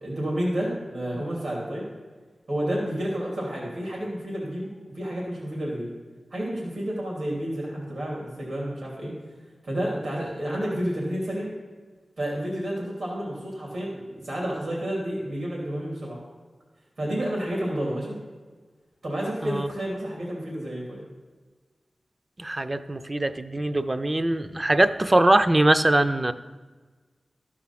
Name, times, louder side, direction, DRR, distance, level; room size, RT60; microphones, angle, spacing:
voice 1, 0.0-1.8 2.5-5.9 6.3-9.2 9.6-11.5 12.2-16.2 17.0-18.2 19.0-21.0, right 1 dB, 85° right, -3 dB, 2.9 m, -30 dB
voice 2, 22.4-26.3, right 1 dB, 25° right, 10 dB, 0.4 m, -22 dB
13.5 x 4.8 x 5.8 m, 1.4 s
wide cardioid pair, 105°, 0 cm